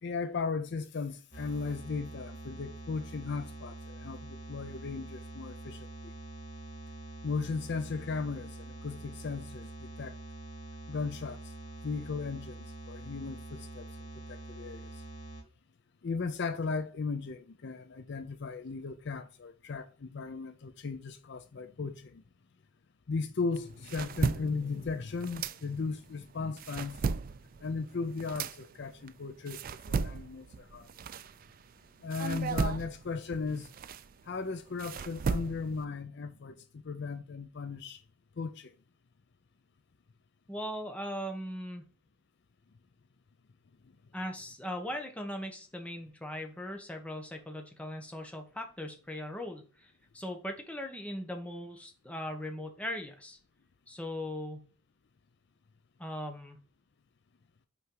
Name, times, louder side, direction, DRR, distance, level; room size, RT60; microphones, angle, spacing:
voice 1, 0.0-6.2 7.2-10.2 10.9-11.5 11.8-15.0 16.0-22.2 23.1-27.0 27.6-30.9 32.0-33.7 34.2-38.0 38.4-38.7 43.8-43.9, left 4 dB, 55° left, 0.5 m, -37 dB
sound 1, 1.3-15.4, right 2 dB, 35° left, 1.9 m, -45 dB
sound 2, 23.5-26.1 26.4-31.7 32.1-35.8, right 5 dB, 40° right, 0.3 m, -36 dB
voice 2, 40.5-41.8 44.1-53.4 53.9-54.7 56.0-56.6, left 1 dB, 5° left, 1.0 m, -39 dB
5.6 x 4.5 x 3.8 m
head